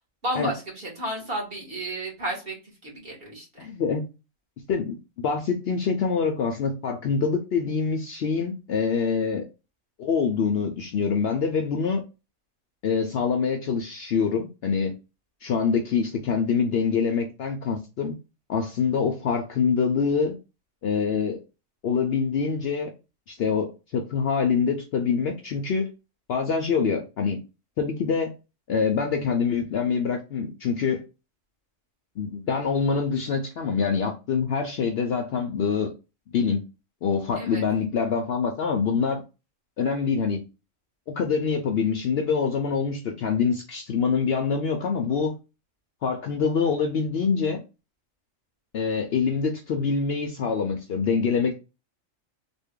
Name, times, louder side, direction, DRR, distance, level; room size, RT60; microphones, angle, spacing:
voice 1, 0.2-2.6 2.8-3.7 37.3-37.6, right 1 dB, 45° right, 1.6 m, -32 dB
voice 2, 3.6-4.0 4.7-9.4 10.0-12.0 12.8-14.9 15.4-18.2 18.5-20.4 20.8-21.4 21.8-22.9 23.3-25.9 26.3-27.4 27.8-28.3 28.7-31.0 32.2-35.9 36.3-36.6 37.0-39.2 39.8-40.4 41.1-45.4 46.0-47.6 48.7-51.6, left 5 dB, 65° left, 0.7 m, -25 dB
3.4 x 2.2 x 3.6 m
omnidirectional pair, 1.4 m